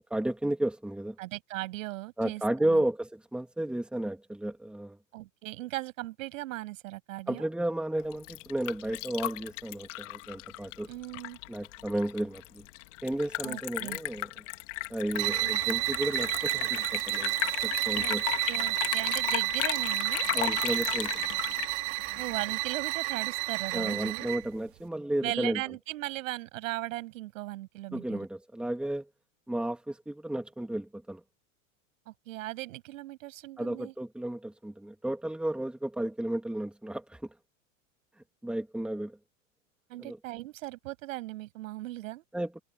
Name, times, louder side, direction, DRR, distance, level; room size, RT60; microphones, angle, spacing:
voice 1, 0.1-1.2 2.2-5.0 7.3-10.9 11.5-12.6 13.0-14.3 14.9-17.3 17.6-18.3 20.3-21.3 23.7-25.6 27.9-29.1 29.5-31.2 33.6-37.3 38.4-39.2 40.0-40.2 42.3-42.6, right 1 dB, ahead, 2.6 m, -33 dB
voice 2, 1.2-2.8 5.1-7.5 10.9-11.4 13.4-14.0 15.2-15.6 18.0-18.2 18.5-20.2 22.2-24.3 25.2-28.2 32.1-33.9 39.9-42.2, right 17 dB, 75° right, 7.3 m, -38 dB
Liquid, 8.0-22.5, left 21 dB, 65° left, 2.2 m, -36 dB
sound 1, 15.1-24.5, right 25 dB, 55° right, 2.0 m, -31 dB
supercardioid pair, 135°, 40 cm